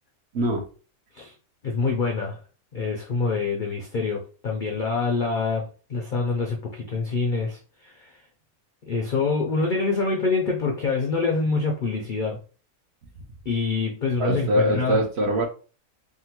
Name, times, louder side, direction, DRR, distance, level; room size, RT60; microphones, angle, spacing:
voice 1, 0.3-0.7 14.2-15.5, right 1 dB, 60° right, 2 dB, 0.8 m, -23 dB
voice 2, 1.6-2.4 2.7-8.2 8.8-12.4 13.5-15.0, left 4 dB, 65° left, 0 dB, 0.5 m, -26 dB
3.6 x 2.1 x 2.9 m, 0.37 s
omnidirectional pair, 1.5 m